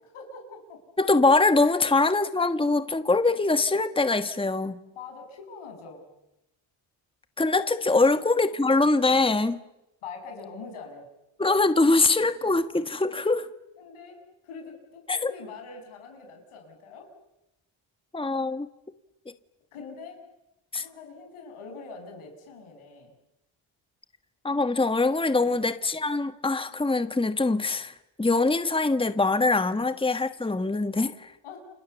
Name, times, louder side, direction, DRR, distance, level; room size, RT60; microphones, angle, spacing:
voice 1, 0.0-0.8 1.7-2.0 4.9-6.0 7.9-8.2 10.0-11.1 13.8-17.1 19.7-20.2 20.7-23.1 25.4-25.6 29.7-29.8 31.4-31.6, left 4 dB, 85° left, 3 dB, 7.6 m, -43 dB
voice 2, 1.0-4.8 7.4-9.6 11.4-13.5 15.1-15.3 18.1-18.7 20.7-20.8 24.4-31.3, left 3 dB, 10° left, 10 dB, 1.4 m, -23 dB
30.0 x 26.5 x 7.0 m, 0.93 s
cardioid pair, 70°, 49 cm